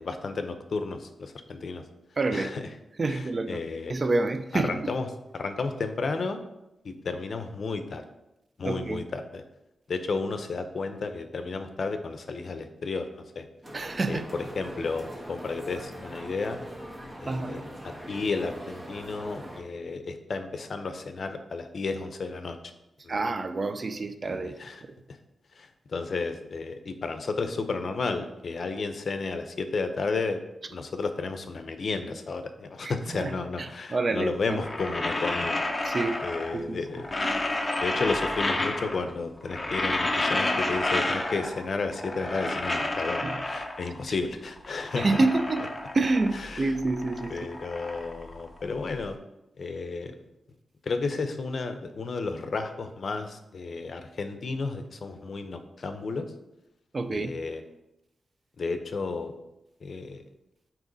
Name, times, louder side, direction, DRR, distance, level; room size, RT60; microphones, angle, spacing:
voice 1, 0.0-1.8 2.3-2.7 3.1-3.9 4.5-5.1 5.3-6.4 6.8-8.0 8.6-9.4 9.9-13.5 14.1-16.6 17.2-22.6 23.0-23.2 24.3-24.8 25.1-25.2 25.5-30.4 30.7-35.6 36.2-37.1 37.8-45.1 46.3-46.8 47.3-49.2 49.6-50.1 50.8-56.3 57.1-57.6 58.6-59.3 59.8-60.2, left 4 dB, 60° left, 8 dB, 0.6 m, -32 dB
voice 2, 2.2-2.6 3.0-3.6 3.9-4.9 8.6-9.0 13.7-14.3 17.3-17.6 23.1-24.5 32.8-33.3 33.6-34.6 35.8-36.2 36.5-37.0 43.2-43.4 45.0-45.7 45.9-47.3 56.9-57.3, right 3 dB, 45° right, 9 dB, 0.5 m, -28 dB
sound 1, 13.6-19.6, equal, 20° right, 1.3 m, -42 dB
sound 2, 34.5-36.6 36.9-39.1 39.4-41.7 41.9-44.0 44.5-46.5 46.8-49.0, left 2 dB, 25° left, 0.8 m, -30 dB
8.9 x 3.0 x 4.0 m, 0.90 s
cardioid pair, 85°, 0 cm